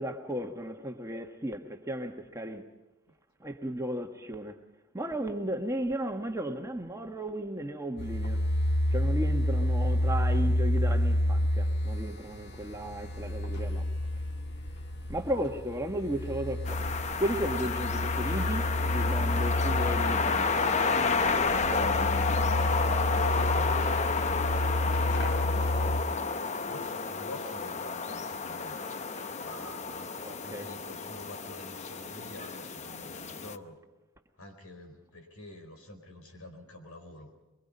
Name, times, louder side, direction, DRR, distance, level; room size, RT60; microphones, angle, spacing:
voice 1, 0.0-2.6 3.4-4.6 4.9-8.4 8.9-13.9 15.1-16.8 17.2-20.7 21.4-22.4 30.2-30.7, right 1 dB, 15° right, 1.4 m, -35 dB
sound 1, 8.0-26.0, left 1 dB, 50° left, 2.5 m, -30 dB
sound 2, 16.6-33.6, left 4 dB, 30° left, 0.7 m, -31 dB
voice 2, 22.7-23.8 24.9-26.0 26.7-28.9 29.4-33.8 34.4-37.3, left 1 dB, 85° left, 4.3 m, -47 dB
23.5 x 23.0 x 5.5 m
head